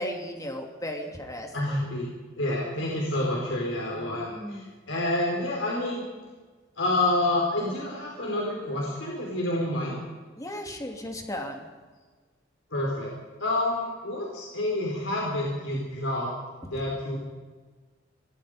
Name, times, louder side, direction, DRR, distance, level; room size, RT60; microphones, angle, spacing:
voice 1, 0.0-1.8 3.9-4.7 10.4-11.7 16.6-16.8, left 1 dB, 20° left, 3 dB, 2.9 m, -36 dB
voice 2, 1.5-2.1 2.4-6.0 6.8-10.0 12.7-13.1 13.4-16.3 16.7-17.2, left 1 dB, 70° left, -2 dB, 4.8 m, -28 dB
25.0 x 20.5 x 5.2 m, 1.4 s
head